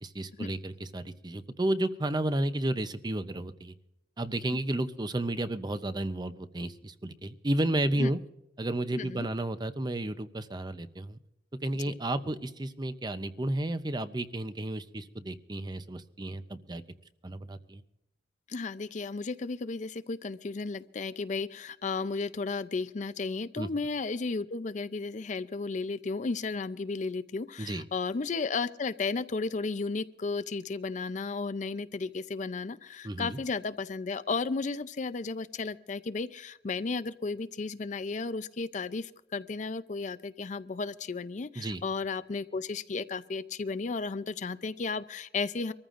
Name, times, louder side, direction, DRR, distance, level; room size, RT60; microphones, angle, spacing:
voice 1, 0.0-3.7 4.2-8.2 8.6-11.2 11.6-16.8 17.2-17.8 23.6-23.7 27.6-27.8 33.0-33.4 41.6-41.8, right 1 dB, 25° right, 11 dB, 0.6 m, -32 dB
voice 2, 9.0-9.3 18.5-45.7, left 4 dB, 40° left, 13 dB, 0.5 m, -34 dB
24.5 x 14.5 x 2.5 m, 0.86 s
head